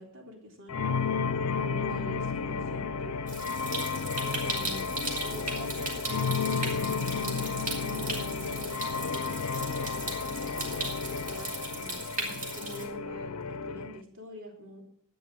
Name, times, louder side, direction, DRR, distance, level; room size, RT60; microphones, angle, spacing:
voice 1, 0.0-3.2 4.2-4.9 5.2-14.8, left 1 dB, 65° right, 2 dB, 3.6 m, -45 dB
sound 1, 0.7-14.0, left 5 dB, 85° left, 0.7 m, -32 dB
Stream, 3.3-12.9, right 3 dB, 40° right, 3.6 m, -37 dB
12.5 x 9.6 x 6.0 m, 0.65 s
head